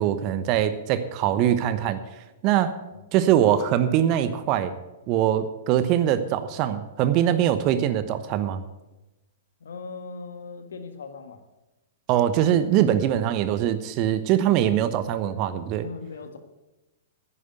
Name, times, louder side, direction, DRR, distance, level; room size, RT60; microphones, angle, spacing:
voice 1, 0.0-2.0 2.4-2.8 3.1-4.7 5.1-8.6 12.1-15.9, right 11 dB, 40° right, 12 dB, 1.0 m, -22 dB
voice 2, 9.6-11.4 15.8-16.4, left 4 dB, 70° left, 8 dB, 1.5 m, -39 dB
10.0 x 9.9 x 8.1 m, 1.0 s
figure-of-eight pair, 105°, 0 cm